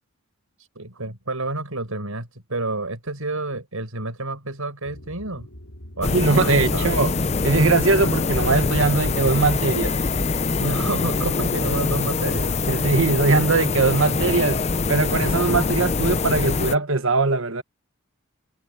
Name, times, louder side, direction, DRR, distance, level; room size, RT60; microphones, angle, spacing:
voice 1, 0.6-5.5 6.0-6.9 10.6-12.5, right 2 dB, 90° right, 5.6 m, -29 dB
sound 1, 4.8-14.9, equal, 80° left, 5.5 m, -45 dB
sound 2, 6.0-16.8, left 4 dB, 30° left, 0.5 m, -24 dB
voice 2, 6.1-7.1 7.4-10.0 12.7-14.6 14.9-17.6, right 3 dB, 70° right, 1.3 m, -20 dB
head